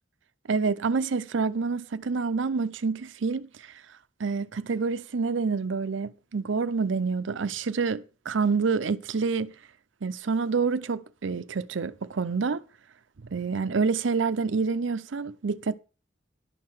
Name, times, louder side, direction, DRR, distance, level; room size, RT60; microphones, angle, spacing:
voice 1, 0.5-3.7 4.2-9.5 10.0-12.6 13.3-15.7, right 4 dB, 75° right, 0.6 m, -27 dB
11.5 x 5.7 x 6.2 m
head